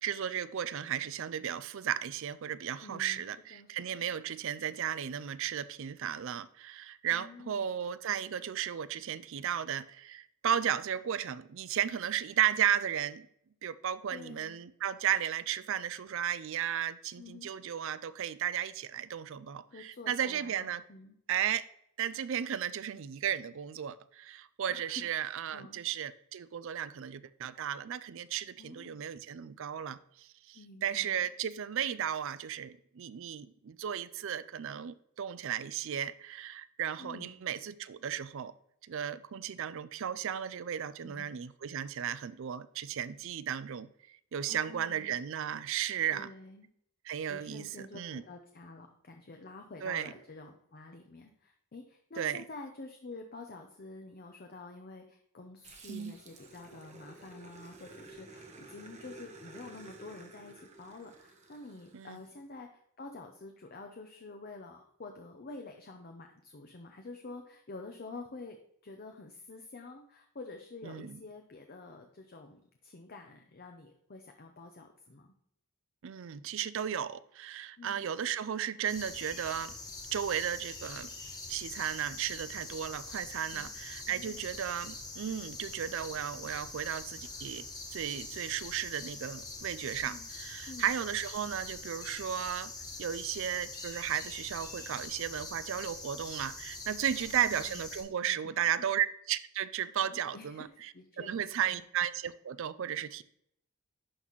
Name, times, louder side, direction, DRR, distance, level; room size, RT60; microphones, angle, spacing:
voice 1, 0.0-13.3 13.6-20.8 21.3-21.7 22.0-38.5 38.8-46.3 47.0-48.2 49.8-50.1 52.2-52.4 55.9-56.1 61.9-62.2 70.8-71.2 76.0-79.8 80.1-81.1 81.5-92.7 93.0-103.2, right 9 dB, 60° right, 16 dB, 0.4 m, -34 dB
voice 2, 2.8-3.2 3.5-4.1 7.1-7.8 14.1-14.6 17.2-17.5 19.7-21.2 24.7-25.8 28.6-29.0 30.5-31.3 37.0-37.3 41.0-41.3 44.5-45.2 46.1-46.7 47.3-75.3 77.8-78.1 83.5-83.8 84.1-84.6 90.1-90.3 90.7-90.9 97.1-97.8 98.2-98.4 100.0-100.7 100.9-101.8, left 3 dB, 45° left, 4 dB, 0.6 m, -49 dB
Growling, 55.6-62.3, right 2 dB, 30° right, 0.9 m, -53 dB
sound 1, 78.9-98.0, left 3 dB, 20° left, 1.4 m, -44 dB
11.0 x 4.1 x 3.0 m, 0.71 s
head